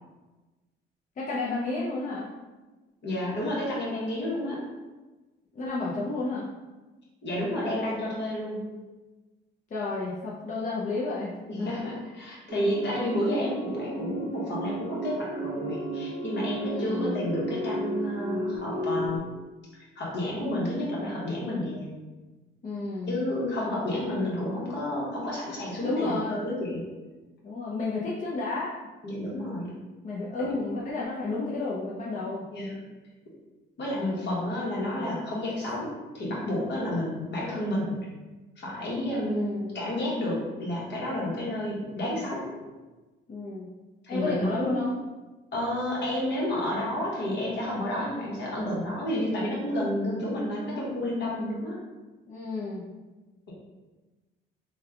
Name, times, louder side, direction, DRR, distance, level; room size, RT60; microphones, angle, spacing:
voice 1, 1.2-2.3 5.5-6.5 9.7-11.7 16.7-17.1 22.6-23.2 25.8-26.4 27.4-28.7 30.0-32.4 33.9-34.3 39.2-39.8 43.3-43.7 44.1-44.9 52.3-52.8, left 3 dB, 40° left, -6 dB, 0.6 m, -31 dB
voice 2, 3.0-4.6 7.2-8.7 11.5-19.3 19.9-21.9 23.1-26.8 29.0-29.8 30.4-30.6 32.5-32.8 33.8-38.0 38.6-42.5 44.0-44.7 45.5-51.8, left 1 dB, 65° left, -5 dB, 1.3 m, -30 dB
sound 1, 12.5-19.2, right 1 dB, 30° right, 0.7 m, -33 dB
3.3 x 2.3 x 3.4 m, 1.2 s
cardioid pair, 90°, 20 cm